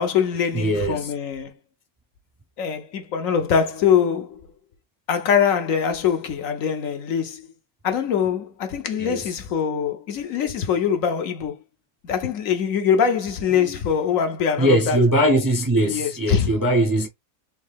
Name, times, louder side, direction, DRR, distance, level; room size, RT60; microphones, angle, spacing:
voice 1, 0.0-1.5 2.6-4.4 5.1-7.4 7.8-11.6 12.0-15.0 15.8-16.5, left 7 dB, 65° left, 1.0 m, -23 dB
voice 2, 0.5-1.1 9.0-9.3 13.5-13.7 14.6-17.1, right 1 dB, 20° right, 0.5 m, -21 dB
4.2 x 2.7 x 3.4 m
omnidirectional pair, 1.6 m